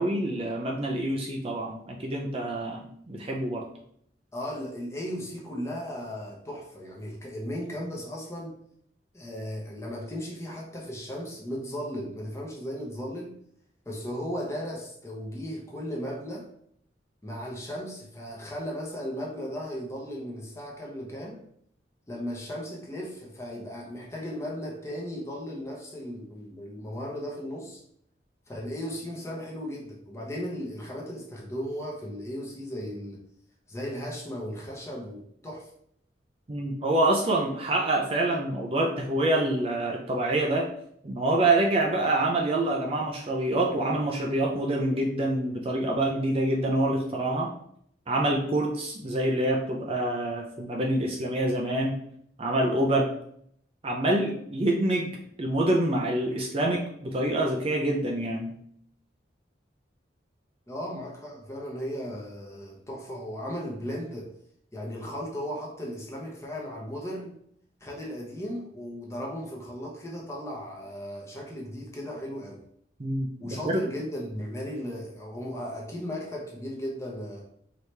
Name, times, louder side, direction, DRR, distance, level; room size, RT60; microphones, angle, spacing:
voice 1, 0.0-3.7 36.5-40.7 41.0-47.5 48.1-52.0 52.4-53.1 53.8-58.6 73.0-73.3 73.7-73.8, right 1 dB, 30° right, 0 dB, 0.4 m, -26 dB
voice 2, 4.3-8.6 9.1-13.4 13.9-16.5 17.2-21.5 22.1-27.8 28.5-33.2 33.7-35.7 60.7-64.3 64.7-67.4 67.8-72.6 73.4-77.5, equal, 15° left, -2 dB, 0.9 m, -36 dB
4.7 x 2.9 x 3.3 m, 0.68 s
head